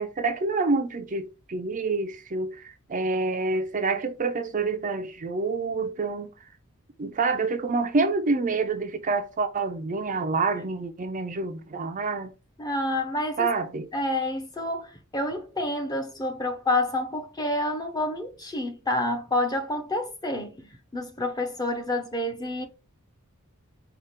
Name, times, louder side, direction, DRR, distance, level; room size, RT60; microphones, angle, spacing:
voice 1, 0.0-6.3 7.0-12.3 13.4-13.9, right 3 dB, 35° right, 0.5 m, -27 dB
voice 2, 12.6-13.5 13.9-22.7, left 1 dB, 20° left, 0.8 m, -28 dB
4.9 x 2.4 x 4.3 m
head